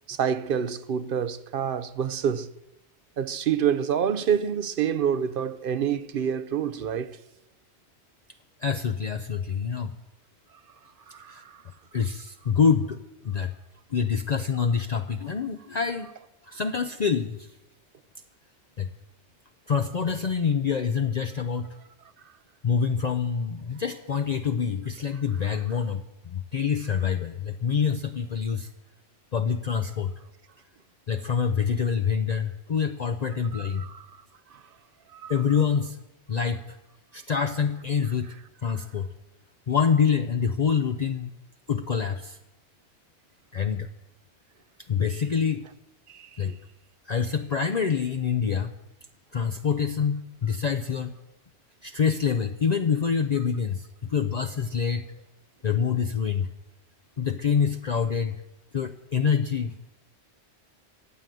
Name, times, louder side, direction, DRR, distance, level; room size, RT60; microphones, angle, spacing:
voice 1, 0.1-2.5 3.2-7.2 11.1-11.6 25.4-25.6 33.5-34.2 34.5-34.6 35.1-35.4 46.1-46.6, right 8 dB, 60° right, 0.8 m, -28 dB
voice 2, 8.6-9.9 11.3-11.4 11.9-13.0 13.2-13.5 13.9-16.1 16.5-17.5 18.8-18.9 19.7-21.7 22.6-28.7 29.3-30.1 31.1-33.8 35.3-36.0 36.3-36.6 37.1-38.3 38.6-39.1 39.7-41.3 41.7-42.4 43.5-43.9 44.9-45.7 46.4-46.5 47.1-48.7 49.3-51.1 51.8-55.0 55.6-56.5 57.2-58.4 58.7-59.7, left 6 dB, 45° left, 0.7 m, -26 dB
15.5 x 8.1 x 9.0 m
omnidirectional pair, 1.1 m